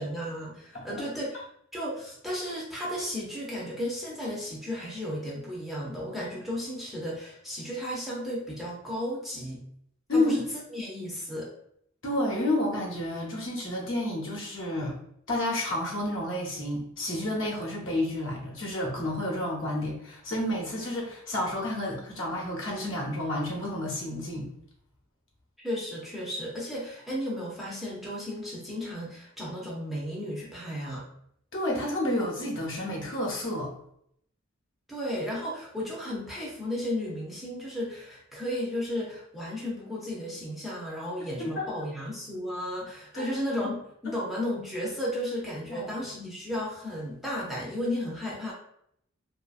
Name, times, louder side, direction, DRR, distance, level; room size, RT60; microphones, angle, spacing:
voice 1, 0.0-1.4 1.7-9.6 10.1-11.5 25.6-31.1 34.9-48.5, equal, ahead, -5 dB, 0.5 m, -34 dB
voice 2, 10.1-10.4 12.0-14.9 15.3-24.5 31.5-33.7 41.2-41.7 43.1-43.3 44.1-44.2 45.7-45.9, left 1 dB, 60° left, -3 dB, 0.8 m, -30 dB
2.7 x 2.5 x 2.3 m, 0.70 s
head